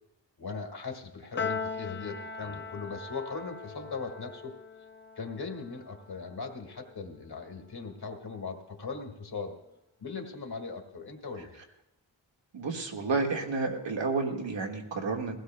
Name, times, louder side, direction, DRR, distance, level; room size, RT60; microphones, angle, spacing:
voice 1, 0.4-4.6 5.2-9.5 10.0-11.6, left 4 dB, 55° left, 4 dB, 1.8 m, -39 dB
Piano, 1.4-7.9, left 5 dB, 25° left, 0.4 m, -40 dB
voice 2, 12.5-15.4, right 3 dB, 75° right, 1 dB, 1.7 m, -31 dB
20.0 x 16.5 x 2.2 m, 0.92 s
wide cardioid pair, 85°, 45 cm